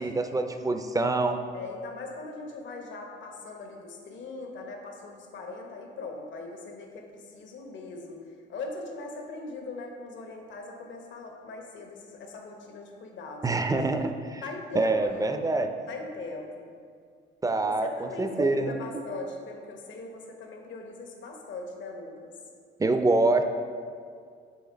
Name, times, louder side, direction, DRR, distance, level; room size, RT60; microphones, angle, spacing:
voice 1, 0.0-1.4 13.4-14.4 14.7-15.7 17.4-17.9 18.2-18.7 22.8-23.4, right 2 dB, 15° right, 7 dB, 0.5 m, -25 dB
voice 2, 1.5-13.8 14.4-15.6 15.9-16.7 17.7-22.3, left 3 dB, 70° left, 2 dB, 1.0 m, -40 dB
7.0 x 3.7 x 5.0 m, 2.2 s
cardioid pair, 90°, 20 cm